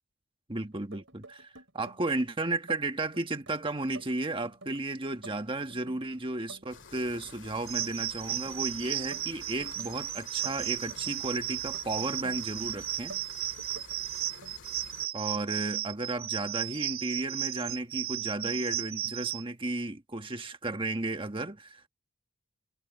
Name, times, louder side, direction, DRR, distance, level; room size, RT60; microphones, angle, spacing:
voice 1, 0.5-13.1 15.1-21.9, right 2 dB, 25° right, 1.4 m, -34 dB
sound 1, 0.7-2.2 2.5-3.5 3.8-6.1 6.3-7.4 7.6-8.7 8.9-11.2 11.6-12.6 12.9-14.0 14.2-14.6, right 2 dB, 60° right, 7.1 m, -51 dB
sound 2, 6.7-15.1, left 5 dB, 60° left, 2.1 m, -50 dB
sound 3, 7.7-19.4, right 12 dB, 80° right, 1.4 m, -35 dB
head